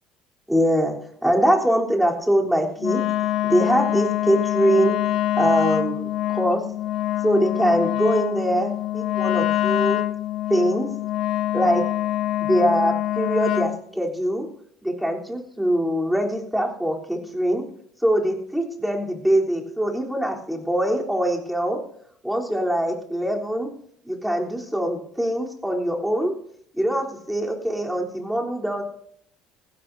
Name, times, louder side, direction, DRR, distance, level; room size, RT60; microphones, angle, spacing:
voice 1, 0.5-1.0 1.2-3.0 3.4-5.0 5.4-6.6 7.2-10.0 10.5-10.9 11.5-11.8 12.4-14.5 14.8-17.6 18.0-21.8 22.2-23.7 24.0-26.3 26.7-28.8, equal, 5° right, -1 dB, 3.5 m, -23 dB
Wind instrument woodwind instrument, 2.8-13.8, left 14 dB, 60° left, 0.6 m, -25 dB
20.0 x 15.5 x 2.7 m, 0.65 s
hypercardioid pair, 65°, 0 cm